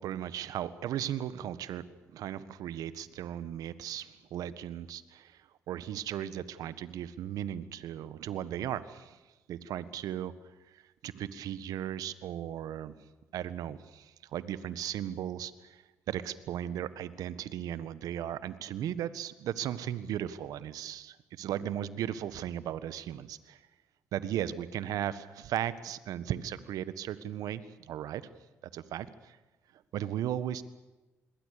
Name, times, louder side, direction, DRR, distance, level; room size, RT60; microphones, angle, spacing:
voice 1, 0.0-1.8 2.1-5.4 5.7-9.2 9.5-10.3 10.7-12.9 13.3-23.6 24.1-28.3 28.7-29.4 29.9-30.6, right 11 dB, 70° right, 15 dB, 1.6 m, -36 dB
27.5 x 22.0 x 6.9 m, 1.1 s
hypercardioid pair, 55°, 6 cm